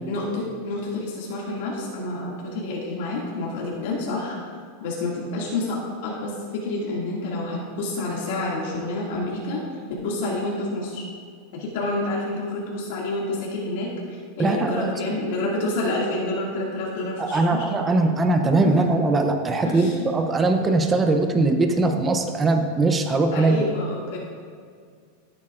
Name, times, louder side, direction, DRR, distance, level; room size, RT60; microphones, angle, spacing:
voice 1, 0.1-4.4 4.8-5.8 6.0-9.6 9.9-11.0 11.5-17.7 18.6-18.8 19.6-20.0 23.3-24.2, left 2 dB, 65° left, -4 dB, 2.2 m, -28 dB
voice 2, 14.4-14.9 17.2-23.6, right 2 dB, 15° right, 5 dB, 0.6 m, -21 dB
14.0 x 8.6 x 2.5 m, 2.1 s
supercardioid pair, 155°, 0 cm